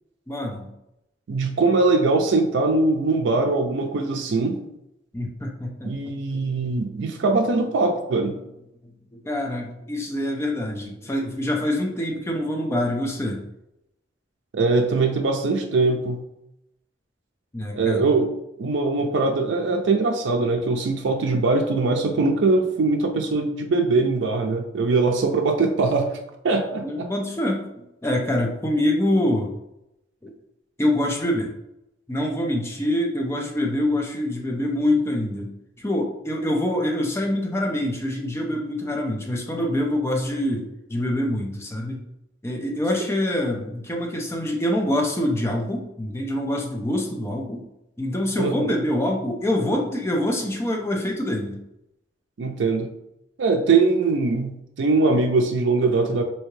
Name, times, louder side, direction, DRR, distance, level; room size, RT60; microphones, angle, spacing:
voice 1, 0.3-0.7 5.1-6.1 9.2-13.4 17.5-18.1 26.8-29.5 30.2-30.3 30.8-31.5 32.1-35.5 35.8-42.0 42.4-47.7 48.0-51.6, left 1 dB, 15° left, 1 dB, 0.5 m, -25 dB
voice 2, 1.3-4.6 5.8-8.4 14.5-16.2 17.7-18.3 18.6-26.1 26.4-27.1 48.4-48.7 52.4-52.9 53.4-56.2, right 3 dB, 80° right, 3 dB, 0.4 m, -21 dB
3.4 x 2.7 x 3.1 m, 0.85 s
head